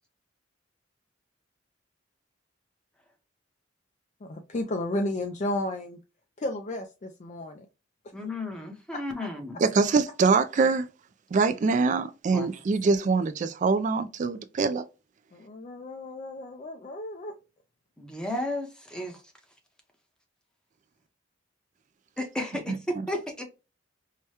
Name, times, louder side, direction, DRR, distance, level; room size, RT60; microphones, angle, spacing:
voice 1, 4.2-6.0 6.4-7.7 8.9-9.0 15.3-17.3, left 1 dB, 40° left, 0.4 m, -33 dB
voice 2, 8.1-9.6 12.3-12.5 18.0-19.2 22.2-23.4, left 1 dB, 5° left, 0.8 m, -33 dB
voice 3, 9.6-10.9 11.3-14.9, right 4 dB, 40° right, 0.3 m, -24 dB
4.7 x 2.2 x 2.8 m
head